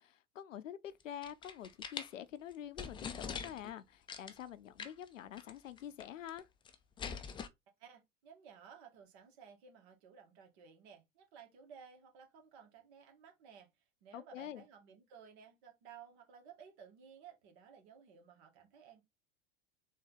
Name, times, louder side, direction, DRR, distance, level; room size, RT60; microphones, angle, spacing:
voice 1, 0.0-6.5 14.1-14.6, left 10 dB, 85° left, 0.6 m, -47 dB
sound 1, 1.0-2.1 2.5-2.6 2.8-3.7 4.1-4.4 4.8-5.1 5.4-5.5 5.8-6.4 6.7-7.5, left 6 dB, 15° left, 0.4 m, -43 dB
voice 2, 7.8-13.7 14.0-19.0, right 7 dB, 60° right, 1.8 m, -57 dB
4.1 x 2.8 x 3.9 m
hypercardioid pair, 85°, 37 cm